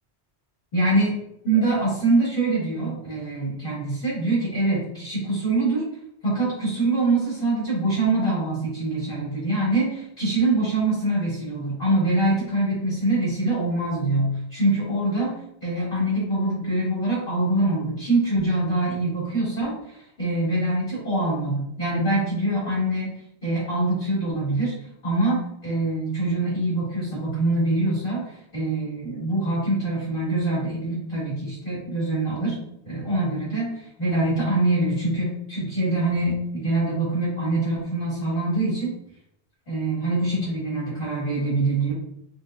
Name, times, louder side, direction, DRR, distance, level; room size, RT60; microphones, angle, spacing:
voice 1, 0.7-1.1 1.4-5.8 6.2-23.1 23.4-24.7 25.0-32.6 32.8-38.9 39.7-41.9, right 2 dB, 50° left, -8 dB, 1.9 m, -24 dB
3.9 x 3.7 x 2.5 m, 0.76 s
omnidirectional pair, 1.2 m